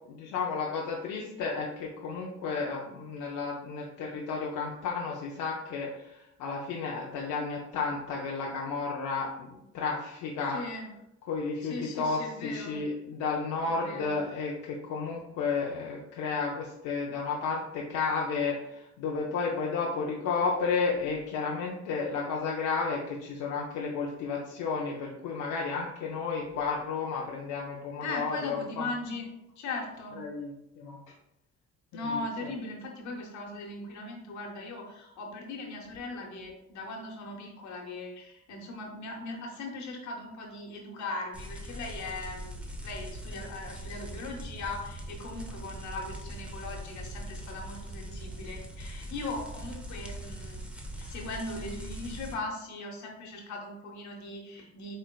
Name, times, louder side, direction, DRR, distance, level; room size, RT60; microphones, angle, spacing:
voice 1, 0.1-10.6 11.3-28.9 30.2-31.0 31.9-32.1, left 4 dB, 90° left, -2 dB, 0.6 m, -32 dB
voice 2, 10.5-10.9 11.6-12.8 13.6-14.2 28.0-29.3 29.6-30.2 31.9-50.6 51.0-55.0, left 2 dB, 70° left, 0 dB, 1.0 m, -39 dB
sound 1, 41.3-52.3, right 1 dB, 5° right, 0.7 m, -41 dB
4.0 x 3.2 x 2.2 m, 0.83 s
cardioid pair, 90°, 30 cm